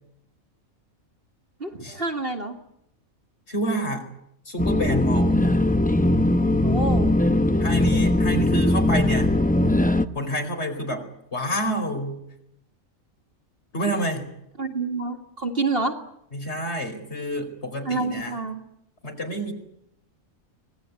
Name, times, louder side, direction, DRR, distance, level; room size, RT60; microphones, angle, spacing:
voice 1, 1.6-2.6 6.6-7.2 14.6-16.0 17.8-18.6, right 3 dB, 40° right, 3 dB, 2.3 m, -28 dB
voice 2, 3.5-4.0 4.4-5.4 7.6-9.3 10.1-12.2 13.7-14.2 16.3-18.4 19.0-19.5, right 1 dB, 50° left, 4 dB, 4.9 m, -28 dB
sound 1, 4.6-10.1, left 1 dB, 10° left, 0.7 m, -20 dB
25.5 x 19.5 x 9.7 m, 0.79 s
omnidirectional pair, 1.5 m